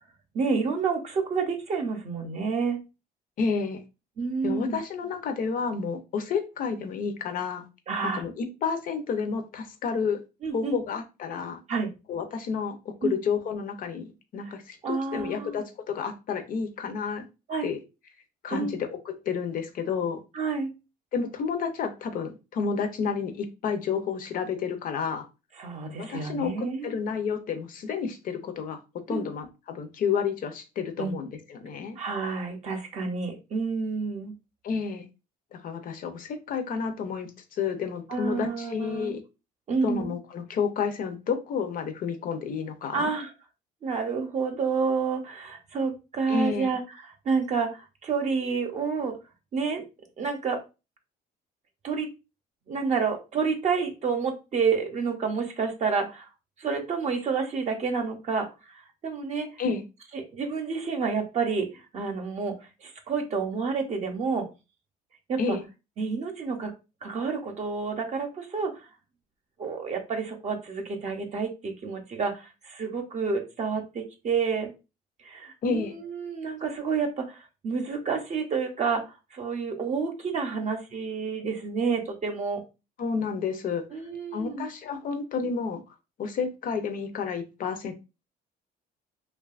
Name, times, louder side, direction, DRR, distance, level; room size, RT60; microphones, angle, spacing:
voice 1, 0.3-2.8 4.2-4.8 7.9-8.2 10.4-10.8 11.7-11.9 13.0-13.1 14.5-14.6 14.8-15.6 17.5-17.7 18.5-18.7 20.3-20.7 25.6-26.9 29.1-29.2 31.0-31.1 32.0-34.3 38.1-39.1 39.7-40.1 42.9-43.3 43.8-49.2 49.5-49.8 50.2-50.6 51.8-52.1 52.7-56.3 56.6-59.5 60.1-64.5 65.3-65.6 66.0-66.7 67.0-68.9 69.6-74.7 75.2-82.6 83.9-84.7, right 5 dB, 45° right, 3 dB, 0.6 m, -29 dB
voice 2, 3.4-3.8 4.4-7.7 8.0-10.2 10.5-11.6 12.1-12.8 13.0-17.3 17.6-17.8 18.4-20.2 21.1-25.2 26.0-28.8 29.1-32.0 34.6-35.1 35.5-37.3 37.6-39.2 39.8-43.1 46.3-46.8 59.6-59.8 65.4-65.6 75.6-75.9 83.0-83.8 84.3-85.8 86.2-87.9, left 6 dB, 55° left, 8 dB, 0.5 m, -30 dB
2.7 x 2.3 x 2.3 m, 0.28 s
cardioid pair, 110°, 17 cm